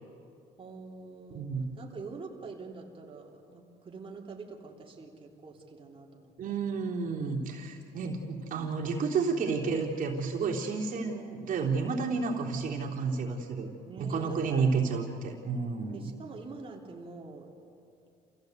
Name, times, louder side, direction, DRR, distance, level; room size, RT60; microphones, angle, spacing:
voice 1, 0.6-6.3 9.6-9.7 12.8-13.2 13.8-14.4 15.9-17.5, right 4 dB, 30° right, 0 dB, 3.4 m, -45 dB
voice 2, 1.3-1.7 6.4-13.7 14.0-16.1, right 4 dB, 55° right, -2 dB, 3.5 m, -31 dB
28.0 x 16.0 x 8.2 m, 2.5 s
cardioid pair, 110°, 17 cm